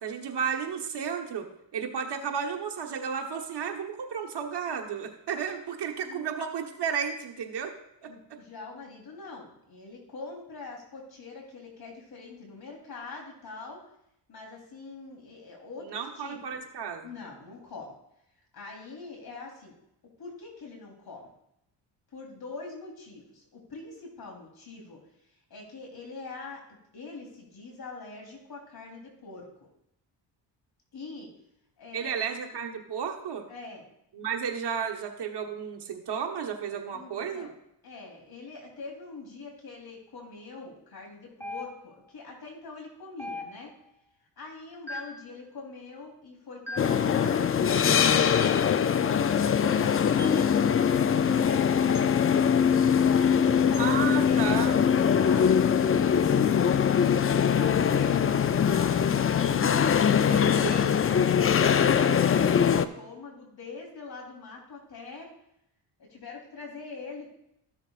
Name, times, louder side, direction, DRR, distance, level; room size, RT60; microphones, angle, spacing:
voice 1, 0.0-7.7 8.0-8.1 15.8-17.1 31.9-33.5 34.1-37.5 53.8-54.7 60.3-60.9, right 7 dB, 60° right, 3 dB, 1.3 m, -33 dB
voice 2, 8.0-13.8 14.3-16.6 17.0-17.9 18.5-19.7 20.2-21.3 22.1-25.0 25.5-26.6 26.9-29.7 30.9-31.3 31.8-32.2 33.5-33.9 36.9-37.5 37.8-43.7 44.4-50.5 51.1-52.2 53.2-54.0 54.2-56.6 57.3-60.5 60.9-65.3 66.0-67.3, left 3 dB, 55° left, -1 dB, 3.6 m, -44 dB
sound 1, 41.4-42.1 43.2-43.9 44.9-45.3 46.7-47.1 48.4-48.7 50.2-50.5 51.9-52.1 53.7-53.9, left 1 dB, 5° left, 1.1 m, -40 dB
sound 2, 46.8-62.9, left 7 dB, 30° left, 0.5 m, -22 dB
14.0 x 6.9 x 2.5 m, 0.80 s
cardioid pair, 65°, 45 cm